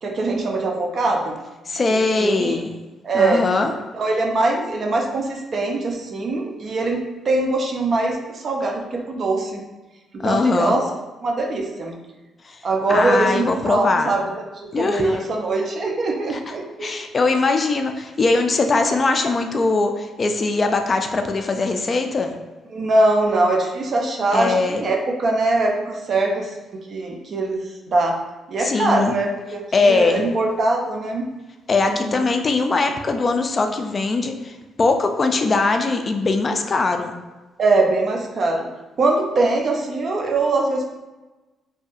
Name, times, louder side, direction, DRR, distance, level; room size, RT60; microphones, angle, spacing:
voice 1, 0.0-1.4 1.9-2.6 3.0-3.4 3.9-9.6 10.1-10.9 11.2-11.9 12.6-17.0 22.7-26.6 26.9-28.1 28.5-31.3 31.8-32.2 37.6-38.7 39.0-40.8, right 2 dB, 50° right, 1 dB, 0.4 m, -22 dB
voice 2, 1.7-2.7 3.1-3.7 10.2-10.8 12.9-14.2 14.7-15.3 16.3-16.4 16.8-22.3 24.3-24.8 28.6-29.1 29.7-30.2 31.7-37.1, left 3 dB, 35° left, 5 dB, 0.3 m, -21 dB
2.7 x 2.5 x 2.3 m, 1.1 s
cardioid pair, 90°, 0 cm